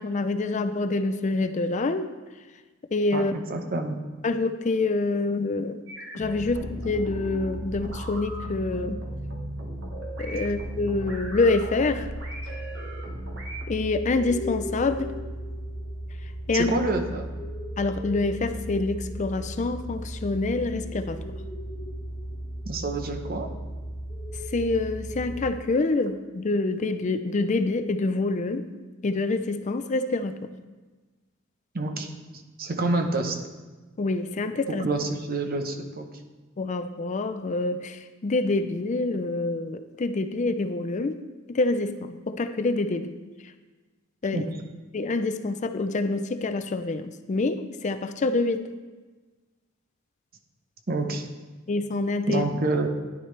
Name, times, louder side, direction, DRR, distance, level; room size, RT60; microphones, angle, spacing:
voice 1, 0.0-2.1 2.9-3.3 4.2-5.8 6.1-9.0 10.2-12.1 13.7-15.1 16.2-16.8 17.8-21.2 24.5-28.7 29.0-30.4 34.0-34.9 36.6-41.2 41.5-43.1 43.4-43.5 44.2-44.5 44.9-48.6 51.7-52.5, left 3 dB, 35° left, 10 dB, 0.4 m, -26 dB
voice 2, 3.1-4.0 16.5-17.3 22.7-23.5 31.7-32.1 32.6-33.4 34.8-36.1 44.3-44.4 50.9-51.3 52.3-52.9, right 2 dB, 45° right, 4 dB, 0.9 m, -27 dB
sound 1, 5.9-13.7, right 1 dB, 60° right, 1.5 m, -40 dB
sound 2, 6.2-25.5, equal, 20° left, 1.1 m, -36 dB
10.5 x 9.6 x 3.2 m, 1.3 s
head